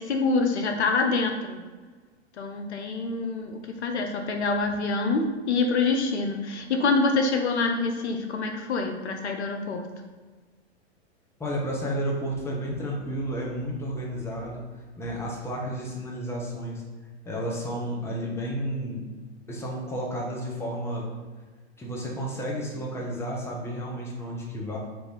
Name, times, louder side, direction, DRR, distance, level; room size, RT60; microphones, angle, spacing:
voice 1, 0.0-1.6 2.4-9.8, left 3 dB, 75° left, 4 dB, 0.6 m, -26 dB
voice 2, 11.4-16.8 17.2-19.1 19.5-21.1 21.8-24.8, equal, 10° left, -2 dB, 0.7 m, -32 dB
4.5 x 2.6 x 3.4 m, 1.4 s
figure-of-eight pair, 100°, 33 cm